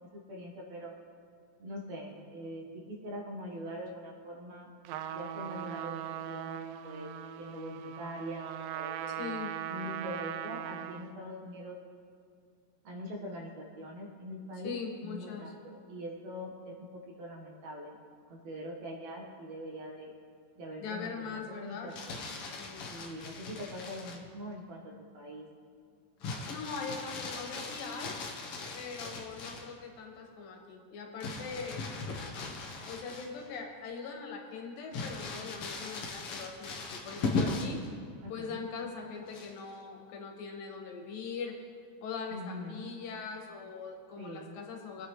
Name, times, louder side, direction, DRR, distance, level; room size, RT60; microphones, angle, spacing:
voice 1, 0.1-0.9 1.6-4.7 5.1-7.1 7.4-9.2 9.7-11.8 12.8-14.8 15.0-16.7 17.2-17.9 18.3-20.1 20.6-22.4 22.9-25.5 38.2-38.7 42.3-42.9 44.2-44.6, equal, 60° right, -1 dB, 2.4 m, -43 dB
Trumpet, 4.8-11.1, right 10 dB, 80° right, 2.2 m, -40 dB
voice 2, 9.2-9.5 14.6-15.4 20.8-21.9 22.4-22.9 26.5-28.1 28.7-31.8 32.8-37.8 38.3-41.5 42.0-45.1, left 5 dB, 80° left, 1 dB, 3.2 m, -41 dB
Crumpling crinkling, 21.7-24.3 26.2-29.8 31.2-33.6 34.0-34.1 34.9-37.9 39.3-39.7, left 3 dB, 60° left, 1.6 m, -38 dB
23.0 x 9.0 x 3.2 m, 2.3 s
omnidirectional pair, 4.0 m